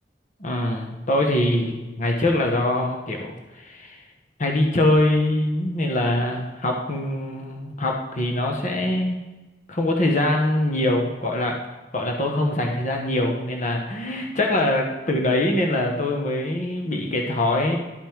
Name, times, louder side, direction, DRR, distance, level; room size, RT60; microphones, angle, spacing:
voice 1, 0.4-4.0 4.4-9.2 9.7-11.6 11.9-17.8, left 1 dB, 45° left, 1 dB, 1.1 m, -23 dB
12.0 x 5.4 x 4.5 m, 1.2 s
head